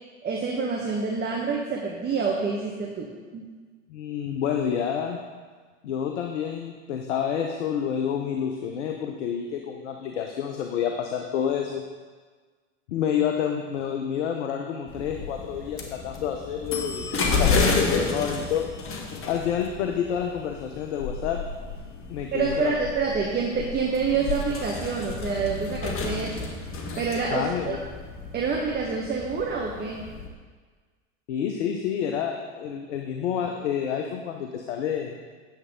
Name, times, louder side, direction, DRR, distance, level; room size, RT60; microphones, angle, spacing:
voice 1, 0.2-3.1 3.3-3.4 22.3-26.6 27.0-27.8 28.3-30.0, right 5 dB, 25° right, -2 dB, 1.3 m, -27 dB
voice 2, 3.9-5.2 5.8-11.8 12.9-18.7 19.3-21.4 22.1-22.7 27.3-27.8 31.3-35.1, left 8 dB, 75° left, 4 dB, 0.9 m, -29 dB
sound 1, 14.9-30.3, left 4 dB, 35° left, 1.5 m, -31 dB
9.1 x 7.8 x 3.7 m, 1.5 s
hypercardioid pair, 85°, 36 cm